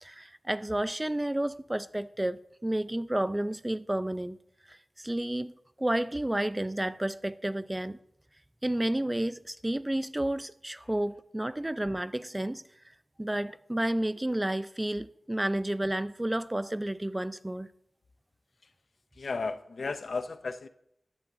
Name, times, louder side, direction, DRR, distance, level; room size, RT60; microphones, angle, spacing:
voice 1, 0.0-4.4 4.7-8.0 8.6-12.6 13.2-17.7, right 1 dB, 15° right, 0.4 m, -31 dB
voice 2, 19.2-20.7, left 4 dB, 80° left, 0.4 m, -34 dB
13.0 x 8.5 x 2.6 m
wide cardioid pair, 75°, 0 cm